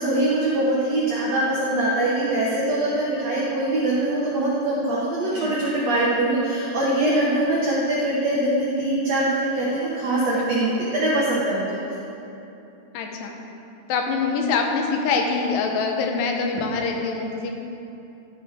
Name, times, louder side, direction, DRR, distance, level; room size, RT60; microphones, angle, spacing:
voice 1, 0.0-11.8, right 1 dB, 85° right, -6 dB, 1.4 m, -23 dB
voice 2, 12.9-13.3 13.9-17.5, left 4 dB, 90° left, 2 dB, 3.0 m, -25 dB
12.5 x 6.8 x 3.6 m, 2.9 s
omnidirectional pair, 4.7 m